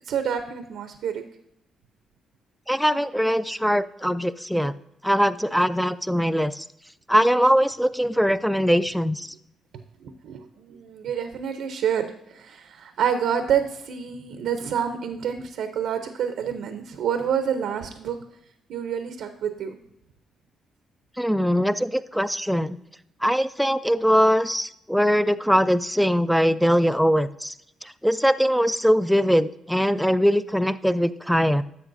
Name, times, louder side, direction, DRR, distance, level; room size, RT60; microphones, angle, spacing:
voice 1, 0.1-1.2 10.0-18.2 18.7-19.8, right 8 dB, 80° right, 8 dB, 0.7 m, -28 dB
voice 2, 2.7-4.7 5.0-6.6 7.1-9.3 21.2-22.8 23.2-27.5 28.0-31.6, equal, ahead, 14 dB, 0.4 m, -21 dB
11.0 x 7.3 x 2.6 m, 0.80 s
cardioid pair, 90°, 0 cm